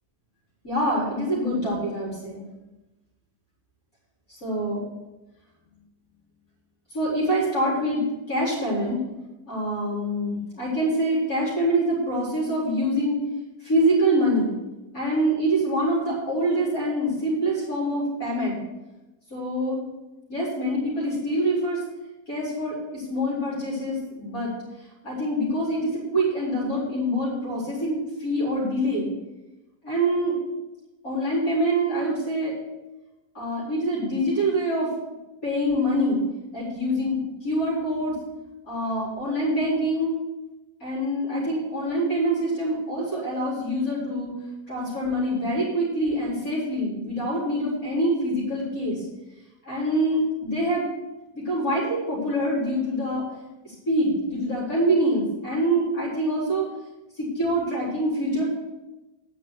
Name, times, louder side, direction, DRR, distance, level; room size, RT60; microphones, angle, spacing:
voice 1, 0.6-2.5 4.3-4.8 6.9-9.0 9.5-13.2 13.6-14.5 14.9-18.6 19.3-19.8 20.3-21.8 22.3-24.5 25.0-29.1 29.8-30.4 31.0-32.5 33.3-34.9 35.4-36.2 36.5-38.2 38.6-40.1 40.8-44.3 44.7-49.0 49.6-50.9 51.3-53.3 53.9-56.6 57.2-58.4, right 1 dB, 50° left, -8 dB, 4.6 m, -25 dB
9.8 x 6.0 x 7.9 m, 1.0 s
omnidirectional pair, 1.9 m